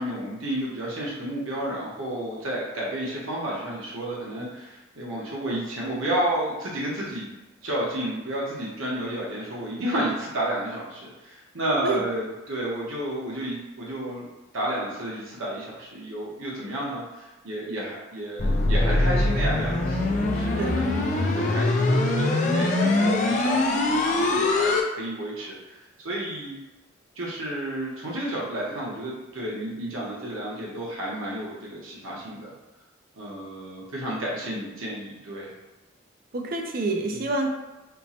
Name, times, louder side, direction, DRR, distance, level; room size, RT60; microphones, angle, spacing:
voice 1, 0.0-7.3 7.6-14.3 14.5-26.6 27.1-32.5 33.2-35.5 37.1-37.3, right 1 dB, 85° right, -5 dB, 0.9 m, -31 dB
sound 1, 18.4-24.8, left 2 dB, 35° left, 0.4 m, -23 dB
voice 2, 36.3-37.5, right 3 dB, 45° right, 2 dB, 0.4 m, -27 dB
4.3 x 2.1 x 2.7 m, 1.1 s
head